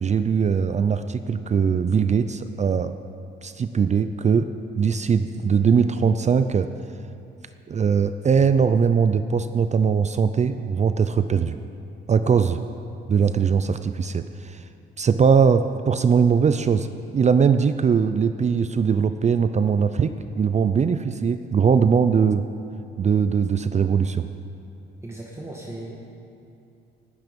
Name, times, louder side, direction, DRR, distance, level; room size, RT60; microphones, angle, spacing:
voice 1, 0.0-2.9 3.4-6.7 7.7-11.6 12.1-12.6 13.1-14.6 15.0-22.4 23.0-24.3, right 6 dB, 35° right, 10 dB, 0.5 m, -21 dB
voice 2, 25.0-25.9, right 1 dB, 15° right, -2 dB, 1.7 m, -36 dB
19.5 x 9.5 x 5.3 m, 2.6 s
cardioid pair, 90°, 20 cm